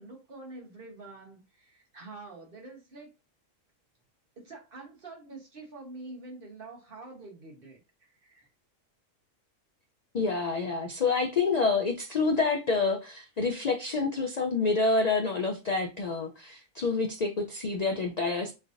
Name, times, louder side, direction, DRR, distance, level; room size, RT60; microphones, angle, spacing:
voice 1, 0.0-3.1 4.4-8.5 11.1-11.2, right 2 dB, 45° right, 1.3 m, -46 dB
voice 2, 10.1-18.5, left 4 dB, 80° left, 0.3 m, -28 dB
3.9 x 3.2 x 2.5 m
omnidirectional pair, 1.4 m